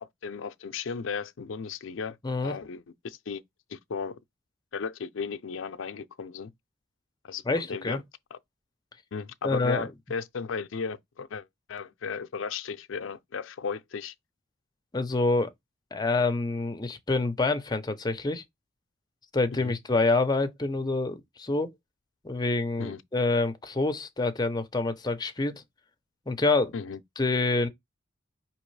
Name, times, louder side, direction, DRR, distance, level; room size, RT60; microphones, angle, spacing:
voice 1, 0.0-2.2 2.4-3.4 3.7-4.2 4.7-6.5 7.2-8.0 8.3-8.4 9.1-14.1 19.6-19.7 22.8-23.0 26.7-27.0, left 5 dB, 75° left, 0.5 m, -35 dB
voice 2, 7.5-8.0 9.4-9.8 14.9-15.5 15.9-18.4 19.3-21.7 22.2-25.6 26.3-26.7 27.2-27.7, left 3 dB, 20° left, 0.6 m, -27 dB
5.2 x 3.0 x 3.2 m
head